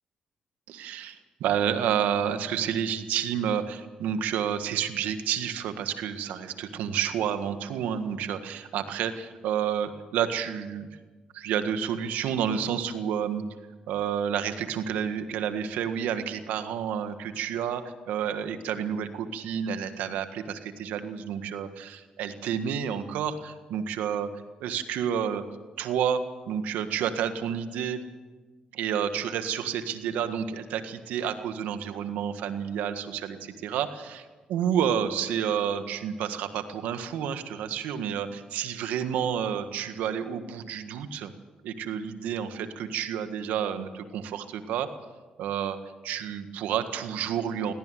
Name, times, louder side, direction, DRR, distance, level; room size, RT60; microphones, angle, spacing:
voice 1, 0.7-10.9 11.3-13.4 13.9-24.3 24.6-25.4 25.8-28.0 28.7-41.3 41.6-44.9 45.4-45.8 46.0-47.7, right 8 dB, 85° right, 9 dB, 1.7 m, -30 dB
18.0 x 18.0 x 9.3 m, 1.3 s
supercardioid pair, 65°, 3 cm